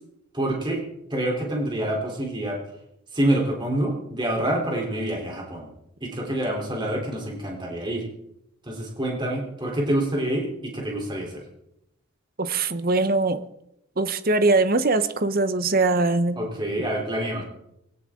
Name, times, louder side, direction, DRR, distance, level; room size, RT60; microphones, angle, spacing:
voice 1, 0.3-0.8 1.1-2.6 3.1-5.7 6.0-8.0 8.7-11.4 16.4-17.4, right 1 dB, 20° right, 0 dB, 3.6 m, -27 dB
voice 2, 12.4-13.4 14.0-16.4, right 3 dB, 45° right, 11 dB, 0.9 m, -22 dB
21.0 x 17.0 x 3.8 m, 0.81 s
head